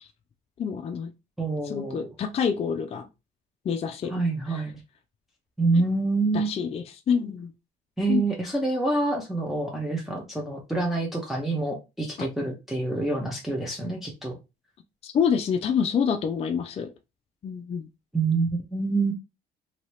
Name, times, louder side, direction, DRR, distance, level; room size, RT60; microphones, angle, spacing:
voice 1, 0.6-1.1 1.6-3.1 3.7-4.1 4.5-4.6 6.3-7.5 8.1-8.2 12.2-12.3 15.0-16.9 17.4-17.9, left 7 dB, 35° left, 0.4 m, -27 dB
voice 2, 1.4-2.0 4.1-4.7 5.6-6.5 8.0-14.4 18.1-19.1, right 3 dB, ahead, 0.8 m, -27 dB
2.8 x 2.7 x 3.1 m
cardioid pair, 110°, 17 cm